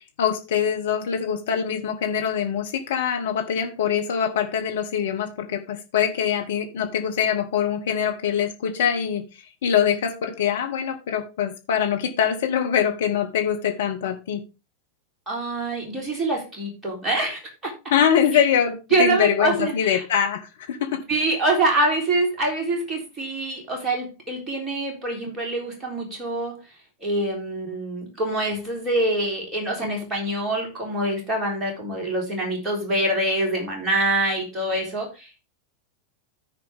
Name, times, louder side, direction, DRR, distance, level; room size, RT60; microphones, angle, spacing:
voice 1, 0.2-9.2 9.6-14.4 17.9-21.0, left 8 dB, 60° left, 4 dB, 1.2 m, -23 dB
voice 2, 15.3-17.7 18.3-18.5 18.9-20.0 21.1-26.6 27.0-35.4, right 2 dB, 20° right, 0 dB, 3.7 m, -25 dB
14.0 x 4.7 x 3.6 m, 0.28 s
figure-of-eight pair, 90°, 0 cm